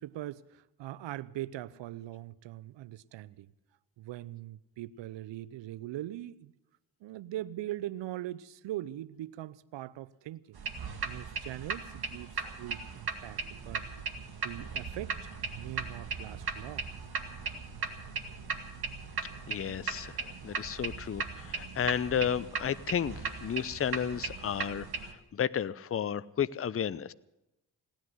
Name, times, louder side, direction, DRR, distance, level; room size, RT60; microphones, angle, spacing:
voice 1, 0.0-3.5 4.0-6.5 7.0-13.8 14.3-15.1 15.4-16.9 19.3-19.4, right 14 dB, 70° right, 19 dB, 0.8 m, -41 dB
sound 1, 10.5-25.1, right 4 dB, 50° right, 2.0 m, -38 dB
voice 2, 19.5-27.1, left 8 dB, 30° left, 16 dB, 0.6 m, -33 dB
17.5 x 10.5 x 7.9 m, 0.93 s
hypercardioid pair, 40°, 47 cm